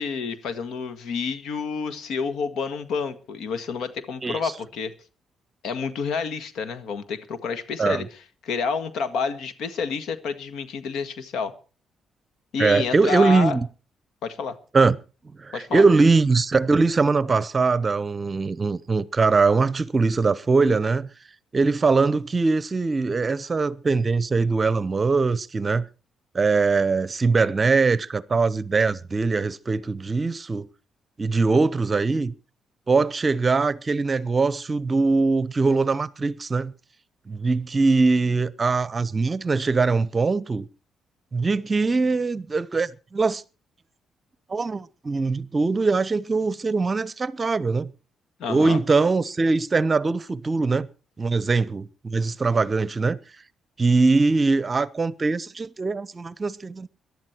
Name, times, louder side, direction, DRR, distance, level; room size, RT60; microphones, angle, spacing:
voice 1, 0.0-4.9 5.6-8.1 8.4-11.5 12.5-13.6 14.2-14.6 15.5-15.8 48.4-48.8, left 5 dB, 75° left, 1.7 m, -29 dB
voice 2, 4.2-4.5 7.8-8.1 12.6-13.7 14.7-15.0 15.4-21.1 21.5-25.8 26.3-30.7 31.2-32.3 32.9-36.7 37.3-40.7 41.3-43.4 44.5-47.9 48.5-50.9 51.2-53.2 53.8-56.9, right 4 dB, 30° right, 0.8 m, -22 dB
18.5 x 11.5 x 4.5 m
cardioid pair, 90°, 0 cm